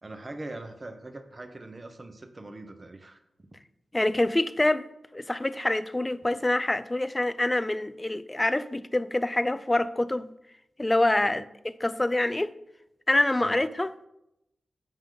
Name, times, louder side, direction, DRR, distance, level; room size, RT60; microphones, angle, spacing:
voice 1, 0.0-3.2 11.2-11.4 13.4-13.6, right 2 dB, 30° right, 1.0 m, -42 dB
voice 2, 3.9-4.9 5.1-10.3 10.8-11.4 11.8-12.5 13.1-13.9, left 1 dB, 20° left, 0.4 m, -26 dB
14.0 x 5.1 x 3.9 m
wide cardioid pair, 90°, 0 cm